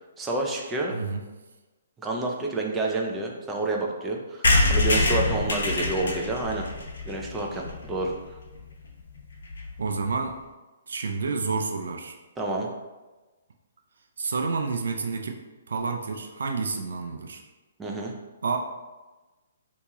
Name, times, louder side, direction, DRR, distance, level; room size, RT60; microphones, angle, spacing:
voice 1, 0.2-1.0 2.0-6.7 7.0-8.1 12.4-12.7 17.8-18.1, right 2 dB, 10° right, -1 dB, 0.4 m, -29 dB
voice 2, 0.9-1.2 5.2-5.5 9.8-10.4 10.9-12.2 14.2-15.4 15.7-17.4 18.4-18.6, right 4 dB, 80° right, 3 dB, 0.4 m, -29 dB
sound 1, 4.4-8.1 8.6-8.7 8.8-8.9 9.2-9.3 9.5-9.7, left 2 dB, 85° left, 0.9 m, -25 dB
2.9 x 2.8 x 3.5 m, 1.2 s
hypercardioid pair, 170°, 0 cm